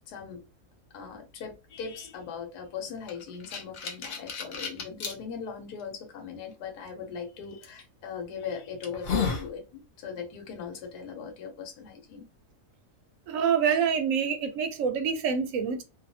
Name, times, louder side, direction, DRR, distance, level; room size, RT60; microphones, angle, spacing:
voice 1, 0.1-0.4 0.9-12.3, left 6 dB, 80° left, 1.2 m, -39 dB
sound 1, 3.1-5.1 5.8-5.9 7.6-7.8 8.4-8.5 8.8-9.5, left 5 dB, 60° left, 0.6 m, -32 dB
voice 2, 13.3-15.8, right 7 dB, 65° right, 0.8 m, -26 dB
2.7 x 2.3 x 2.6 m
omnidirectional pair, 1.7 m